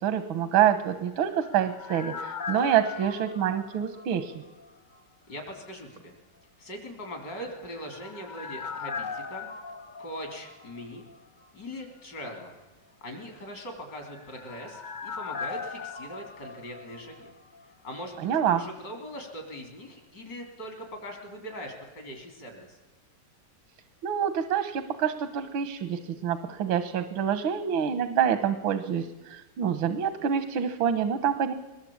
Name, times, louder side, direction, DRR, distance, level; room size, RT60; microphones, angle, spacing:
voice 1, 0.0-4.3 18.2-18.6 24.0-31.5, right 9 dB, 85° right, 11 dB, 2.0 m, -26 dB
sound 1, 0.8-4.7 4.9-5.0 7.4-11.2 11.4-11.5 13.8-17.6 17.9-18.0, left 5 dB, 35° left, 0.7 m, -39 dB
voice 2, 5.3-6.1 6.6-9.5 10.0-11.1 11.5-12.5 13.0-17.3 17.8-22.8, equal, 60° left, 3 dB, 4.3 m, -41 dB
22.5 x 20.0 x 8.7 m, 1.1 s
omnidirectional pair, 2.1 m